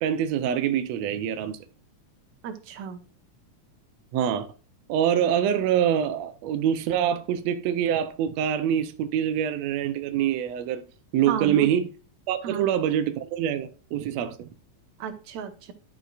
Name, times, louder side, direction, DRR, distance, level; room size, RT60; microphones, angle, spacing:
voice 1, 0.0-1.6 4.1-4.5 4.9-10.8 11.1-11.9 12.3-14.5, right 9 dB, 80° right, 1.5 m, -25 dB
voice 2, 2.4-3.0 11.3-11.7 12.4-12.7 15.0-15.7, right 8 dB, 65° right, 2.2 m, -33 dB
11.5 x 5.7 x 2.4 m
omnidirectional pair, 3.8 m